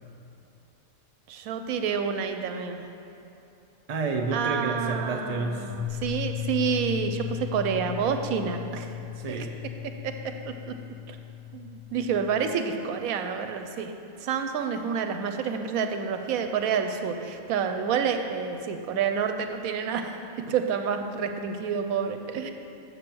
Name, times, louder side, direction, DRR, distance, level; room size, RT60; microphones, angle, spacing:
voice 1, 1.3-2.8 4.3-8.9 9.8-10.7 11.1-11.2 11.5-13.9 14.2-20.2 20.5-22.5, right 6 dB, 90° right, 6 dB, 1.1 m, -29 dB
voice 2, 3.9-5.7 9.1-9.5, right 3 dB, 40° right, 2 dB, 0.6 m, -29 dB
sound 1, 5.7-12.5, left 11 dB, 75° left, 0.3 m, -36 dB
6.9 x 6.8 x 6.1 m, 2.8 s
omnidirectional pair, 1.5 m